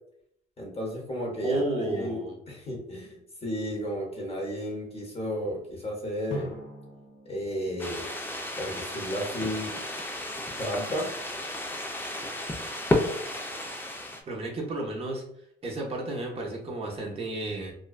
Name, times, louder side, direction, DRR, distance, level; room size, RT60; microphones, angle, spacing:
voice 1, 0.6-6.6 7.2-8.1 8.6-9.8 10.6-11.2, equal, 30° left, -2 dB, 0.8 m, -33 dB
voice 2, 1.4-2.3 14.3-15.2 15.6-17.7, right 2 dB, 30° right, -1 dB, 0.6 m, -32 dB
Drum, 6.3-9.0, equal, 75° left, 0.7 m, -43 dB
sound 1, 7.8-14.2, left 1 dB, 10° left, 0.3 m, -32 dB
2.5 x 2.1 x 2.3 m, 0.73 s
cardioid pair, 90°, 20 cm